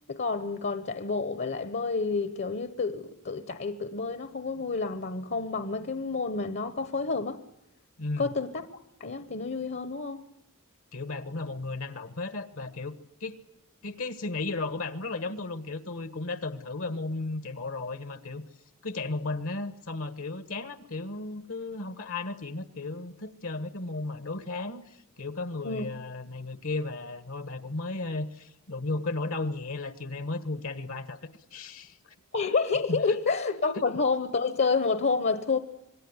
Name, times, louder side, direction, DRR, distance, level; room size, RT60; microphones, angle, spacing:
voice 1, 0.1-7.4 8.2-8.7 9.0-10.2 25.6-25.9 32.3-35.6, left 4 dB, 50° left, 1.1 m, -29 dB
voice 2, 8.0-8.3 10.9-12.9 13.2-13.4 13.8-18.4 18.8-31.2 31.5-32.0 32.9-33.0, left 3 dB, 65° left, 1.4 m, -34 dB
26.0 x 20.5 x 9.7 m
head